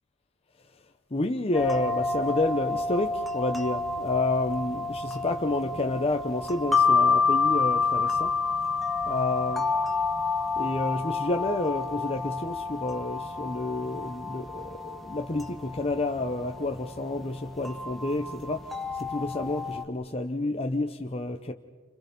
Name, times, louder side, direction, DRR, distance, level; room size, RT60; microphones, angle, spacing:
voice 1, 1.1-8.3 9.1-9.7 10.6-21.5, left 2 dB, 30° left, 4 dB, 0.9 m, -30 dB
sound 1, 1.5-19.9, left 4 dB, ahead, 1.4 m, -29 dB
29.5 x 29.0 x 5.3 m, 1.3 s
head